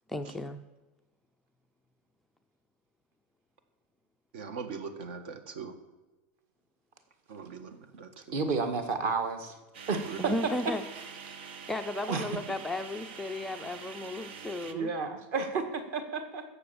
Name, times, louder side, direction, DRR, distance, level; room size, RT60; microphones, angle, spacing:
voice 1, 0.1-0.6 10.2-10.8 11.7-14.9, left 1 dB, 5° left, 5 dB, 0.4 m, -34 dB
voice 2, 4.3-5.7 7.3-8.4 10.0-10.2, right 5 dB, 65° right, 10 dB, 1.6 m, -41 dB
voice 3, 8.3-9.6 9.9-10.1 12.1-12.3 14.7-16.4, right 4 dB, 40° right, 7 dB, 1.7 m, -31 dB
sound 1, 9.7-14.7, right 6 dB, 80° right, 1.4 m, -45 dB
16.5 x 7.0 x 7.0 m, 1.2 s
supercardioid pair, 175°, 6 cm